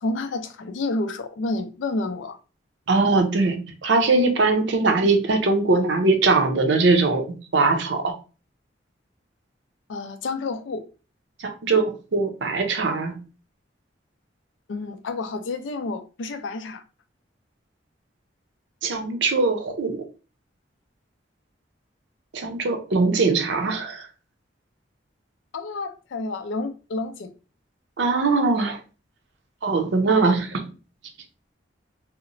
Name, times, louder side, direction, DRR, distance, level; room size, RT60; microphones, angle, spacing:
voice 1, 0.0-2.4 9.9-10.8 14.7-16.8 25.5-27.3, left 3 dB, 85° left, 0.4 m, -29 dB
voice 2, 2.9-7.3 7.5-8.1 11.4-13.2 18.8-20.0 22.3-24.1 28.0-28.8 29.6-30.7, right 3 dB, 70° right, 0.5 m, -21 dB
2.8 x 2.0 x 2.5 m
head